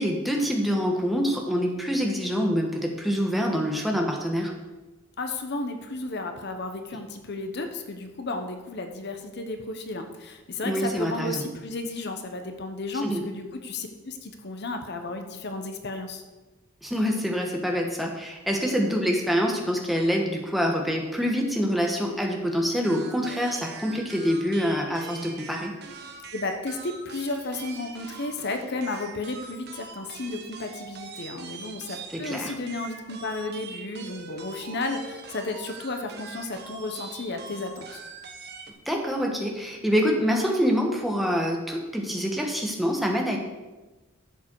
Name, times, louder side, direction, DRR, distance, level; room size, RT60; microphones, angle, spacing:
voice 1, 0.0-4.5 10.6-11.4 13.0-13.2 16.8-25.7 32.1-32.5 38.8-43.4, equal, ahead, 0 dB, 1.4 m, -26 dB
voice 2, 5.2-16.2 26.3-38.0, left 2 dB, 55° left, 6 dB, 1.0 m, -33 dB
sound 1, 22.8-38.7, right 4 dB, 55° right, 1.1 m, -43 dB
11.5 x 7.4 x 4.7 m, 1.2 s
head